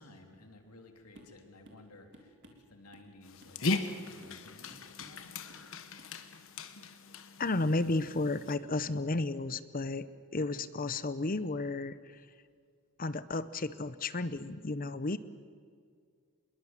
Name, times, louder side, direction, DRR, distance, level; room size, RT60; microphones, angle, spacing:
voice 1, 0.0-5.4, left 2 dB, 90° left, 4 dB, 3.1 m, -56 dB
sound 1, 1.2-1.4 1.7-1.9 2.1-3.1 3.4-4.0 4.2-4.4 4.7-5.2 5.5-5.7 6.0-6.2, equal, 55° right, 3.4 m, -57 dB
Dog, 3.2-8.6, left 2 dB, 60° left, 1.4 m, -38 dB
voice 2, 7.4-10.1 10.3-12.0 13.0-15.2, left 2 dB, 40° left, 14 dB, 0.8 m, -32 dB
26.0 x 21.5 x 7.4 m, 2.1 s
head